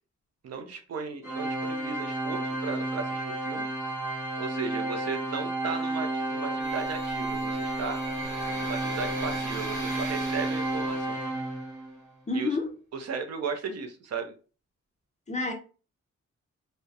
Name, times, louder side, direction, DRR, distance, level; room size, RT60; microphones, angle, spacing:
voice 1, 0.4-3.7 4.4-8.0 8.6-11.2 12.3-12.5 12.9-14.3, right 5 dB, 60° right, 0.5 m, -36 dB
Organ, 1.2-12.0, right 2 dB, 10° right, 0.7 m, -31 dB
sound 1, 6.6-11.7, right 2 dB, 90° right, 1.0 m, -40 dB
voice 2, 12.3-12.7 15.3-15.5, left 3 dB, 25° left, 0.4 m, -29 dB
2.7 x 2.0 x 2.3 m
wide cardioid pair, 180°, 29 cm